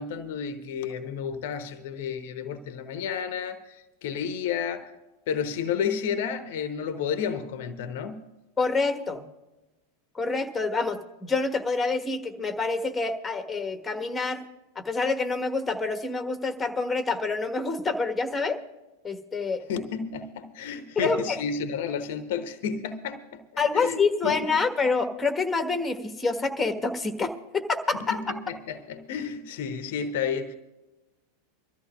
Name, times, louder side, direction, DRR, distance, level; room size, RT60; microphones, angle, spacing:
voice 1, 0.0-4.9 5.3-8.3 19.7-23.4 23.7-24.4 27.9-30.5, left 7 dB, 55° left, 0.8 m, -31 dB
voice 2, 8.6-9.2 10.1-14.4 14.7-18.6 19.0-19.6 20.9-21.4 23.6-28.3, left 4 dB, 15° left, 1.4 m, -27 dB
24.0 x 13.5 x 2.4 m
figure-of-eight pair, 85°, 0 cm